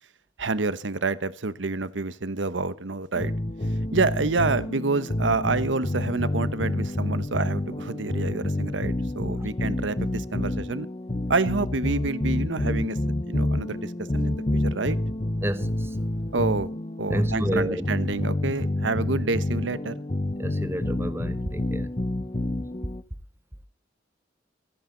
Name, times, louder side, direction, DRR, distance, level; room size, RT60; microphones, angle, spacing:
voice 1, 0.4-3.3 3.9-10.9 11.3-13.0 13.3-15.0 16.3-16.7 17.0-19.9, right 3 dB, 85° right, 1.0 m, -28 dB
sound 1, 3.1-23.0, left 1 dB, 30° left, 1.0 m, -28 dB
voice 2, 15.4-15.9 17.1-17.8 20.4-21.9, equal, 15° right, 1.1 m, -30 dB
25.0 x 10.5 x 3.9 m
head